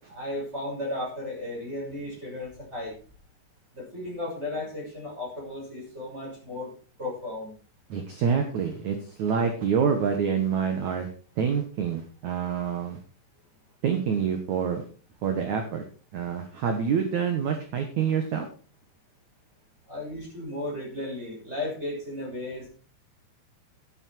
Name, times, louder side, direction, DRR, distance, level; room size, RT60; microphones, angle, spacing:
voice 1, 0.1-2.9 3.7-6.7 7.0-7.5 19.9-22.7, left 1 dB, 15° right, -4 dB, 6.7 m, -35 dB
voice 2, 7.9-11.1 11.4-13.0 13.8-14.8 15.2-15.9 16.1-18.5, right 7 dB, 60° right, 5 dB, 2.0 m, -27 dB
11.0 x 11.0 x 4.6 m, 0.38 s
omnidirectional pair, 5.2 m